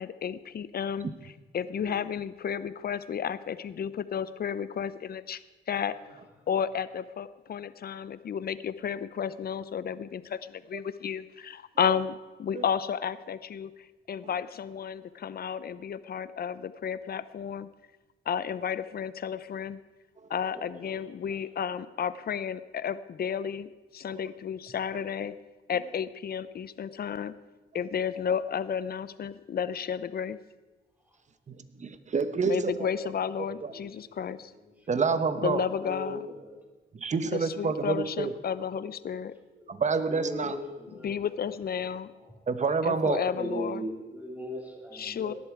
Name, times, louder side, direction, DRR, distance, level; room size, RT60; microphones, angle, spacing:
voice 1, 0.0-5.4 5.7-6.2 6.5-17.7 18.3-19.8 20.3-25.3 25.7-27.3 27.7-30.4 32.4-34.5 35.4-36.3 37.3-39.3 40.4-40.5 41.0-42.1 42.8-43.9 44.9-45.3, left 7 dB, 55° left, 15 dB, 0.7 m, -32 dB
voice 2, 31.5-32.7 33.6-33.7 34.9-35.6 37.0-38.3 39.7-40.6 42.5-43.2, right 5 dB, 40° right, 11 dB, 1.1 m, -28 dB
voice 3, 35.8-36.2 40.1-41.1 43.3-45.3, equal, 10° right, 0 dB, 3.6 m, -37 dB
18.0 x 11.5 x 4.8 m, 1.2 s
cardioid pair, 95°, 19 cm